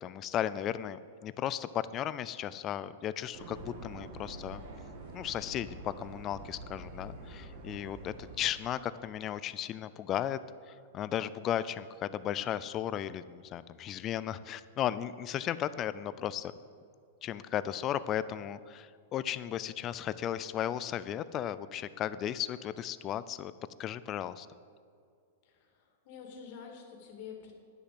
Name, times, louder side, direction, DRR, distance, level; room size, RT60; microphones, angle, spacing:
voice 1, 0.0-4.6 5.1-10.4 10.7-16.5 17.2-23.5 23.8-24.5, left 10 dB, 25° left, 15 dB, 0.4 m, -35 dB
sound 1, 3.3-8.4, right 2 dB, 50° right, 2.1 m, -46 dB
voice 2, 26.0-27.5, left 7 dB, 45° left, 1 dB, 2.3 m, -47 dB
10.5 x 6.7 x 7.8 m, 2.3 s
supercardioid pair, 160°, 0 cm